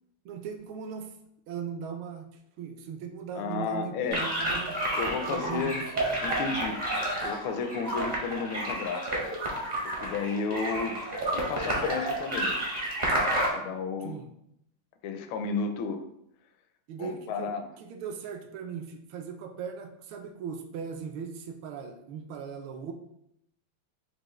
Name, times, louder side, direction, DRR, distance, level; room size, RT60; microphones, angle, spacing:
voice 1, 0.2-1.1 1.5-2.3 2.6-4.8 5.3-6.3 14.0-14.3 16.9-22.9, right 7 dB, 80° right, 5 dB, 1.3 m, -39 dB
voice 2, 3.3-4.4 4.9-5.9 6.2-9.2 9.8-12.6 13.4-14.2 15.0-16.0 17.0-17.7, left 5 dB, 75° left, 7 dB, 1.3 m, -33 dB
sound 1, 4.1-13.5, right 1 dB, 45° right, 0.5 m, -30 dB
6.2 x 2.5 x 3.0 m, 0.77 s
omnidirectional pair, 2.4 m